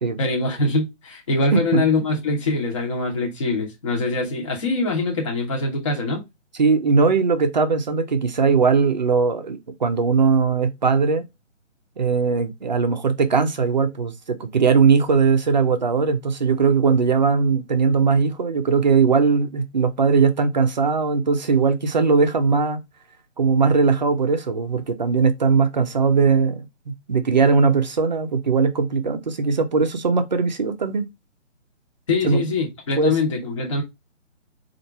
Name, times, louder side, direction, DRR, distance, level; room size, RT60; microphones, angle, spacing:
voice 1, 0.2-6.2 32.1-33.8, left 3 dB, 25° left, 0.9 m, -23 dB
voice 2, 1.5-1.8 6.6-11.2 12.0-22.8 23.4-31.1 32.2-32.4 33.0-33.2, right 5 dB, 35° right, 0.6 m, -19 dB
4.3 x 2.5 x 4.4 m
figure-of-eight pair, 155°, 38 cm